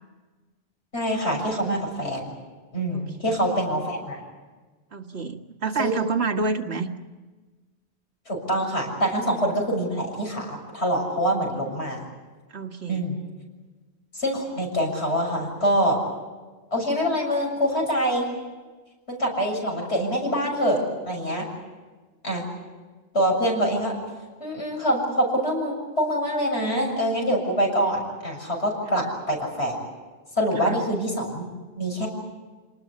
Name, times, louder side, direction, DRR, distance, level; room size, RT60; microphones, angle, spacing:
voice 1, 0.9-2.3 2.7-4.2 5.8-5.9 8.3-12.1 12.9-13.2 14.1-16.0 16.7-18.3 19.1-21.5 22.2-22.4 23.1-24.0 24.4-29.8 30.4-31.5 31.8-32.1, equal, 80° left, 1 dB, 7.1 m, -25 dB
voice 2, 2.9-3.4 4.9-6.9 12.5-13.0 28.9-29.1 30.6-30.8, right 4 dB, 75° right, 4 dB, 1.8 m, -29 dB
28.0 x 19.5 x 8.5 m, 1.3 s
omnidirectional pair, 1.1 m